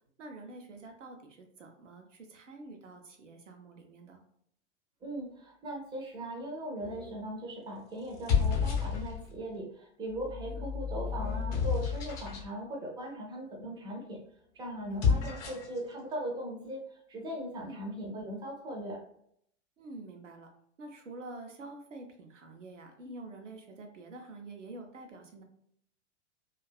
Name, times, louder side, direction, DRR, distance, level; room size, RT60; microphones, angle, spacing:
voice 1, 0.2-4.2 10.5-10.8 14.9-15.2 17.6-17.8 19.8-20.5 20.8-25.4, right 2 dB, 75° right, 4 dB, 0.6 m, -47 dB
voice 2, 5.0-14.2 14.6-16.8 17.1-19.0, right 1 dB, 10° right, -1 dB, 0.5 m, -39 dB
sound 1, 6.8-7.2 8.1-9.4 10.2-12.5 14.8-15.8, left 6 dB, 35° left, 0.7 m, -31 dB
2.5 x 2.3 x 2.2 m, 0.69 s
figure-of-eight pair, 95°, 37 cm